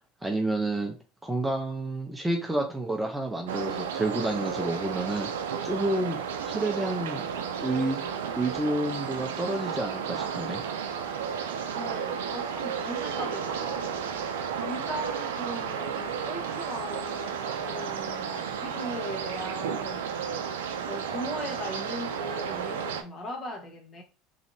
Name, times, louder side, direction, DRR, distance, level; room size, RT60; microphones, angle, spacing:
voice 1, 0.2-0.9 1.2-5.3 5.6-7.2 7.6-8.0 8.4-10.6, right 2 dB, 10° right, 0.7 m, -29 dB
sound 1, 3.5-23.0, right 7 dB, 85° right, 0.4 m, -33 dB
voice 2, 11.7-20.0 20.8-24.0, equal, 35° left, 1.2 m, -39 dB
3.2 x 2.6 x 2.7 m
hypercardioid pair, 90°, 0 cm